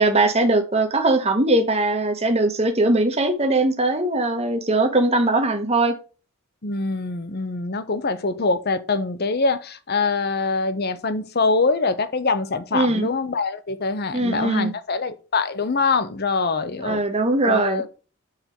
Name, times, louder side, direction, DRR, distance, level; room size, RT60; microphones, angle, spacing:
voice 1, 0.0-5.9 12.7-13.1 14.1-14.7 16.8-17.8, right 2 dB, 30° right, 1.2 m, -20 dB
voice 2, 6.6-17.0 17.5-17.9, left 4 dB, 45° left, 0.8 m, -24 dB
6.7 x 4.5 x 5.2 m
head